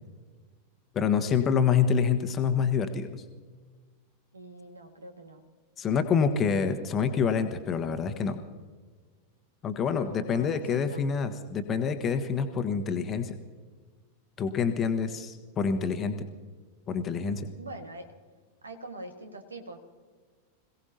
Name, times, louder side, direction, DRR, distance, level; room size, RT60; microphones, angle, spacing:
voice 1, 0.9-3.2 5.8-8.4 9.6-13.3 14.4-16.2 16.9-17.4, left 6 dB, 25° left, 7 dB, 1.3 m, -27 dB
voice 2, 4.3-5.4 9.8-11.1 17.6-18.1 18.6-19.8, right 2 dB, 75° right, 5 dB, 1.8 m, -44 dB
26.5 x 17.0 x 2.9 m, 1.5 s
figure-of-eight pair, 90°, 0 cm